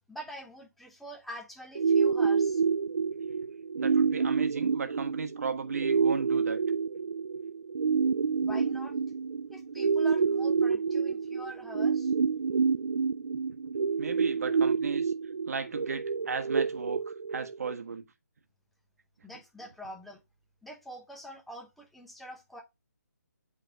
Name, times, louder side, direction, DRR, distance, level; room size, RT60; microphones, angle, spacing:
voice 1, 0.1-2.6 8.4-9.0 9.5-12.1 19.2-20.2 20.6-22.6, equal, ahead, 0.9 m, -45 dB
sound 1, 1.8-17.7, right 5 dB, 85° right, 0.4 m, -28 dB
voice 2, 3.8-6.6 14.0-15.1 15.5-18.0, right 5 dB, 60° right, 1.2 m, -35 dB
8.2 x 3.6 x 3.4 m
hypercardioid pair, 160°, 10 cm